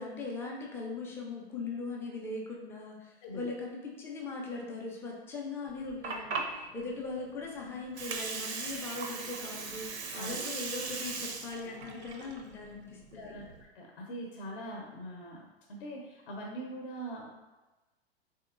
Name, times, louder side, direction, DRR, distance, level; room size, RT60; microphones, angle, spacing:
voice 1, 0.0-9.9 10.1-13.4, left 3 dB, 10° left, -2 dB, 0.3 m, -40 dB
Water, 5.7-13.6, right 4 dB, 85° right, 0.5 m, -39 dB
voice 2, 10.1-10.4 13.1-17.3, right 1 dB, 55° left, 0 dB, 0.6 m, -42 dB
3.6 x 2.8 x 2.4 m, 1.1 s
figure-of-eight pair, 95°, 32 cm